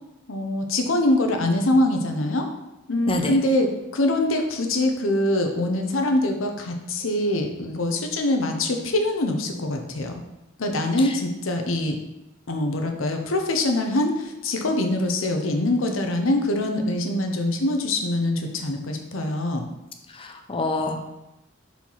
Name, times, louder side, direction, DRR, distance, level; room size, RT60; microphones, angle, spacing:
voice 1, 0.3-2.5 2.9-3.7 3.9-10.2 10.6-12.0 12.5-19.6, left 1 dB, 85° left, 4 dB, 0.8 m, -24 dB
voice 2, 20.2-21.1, left 2 dB, 25° left, 4 dB, 0.7 m, -26 dB
4.5 x 4.4 x 5.6 m, 0.94 s
head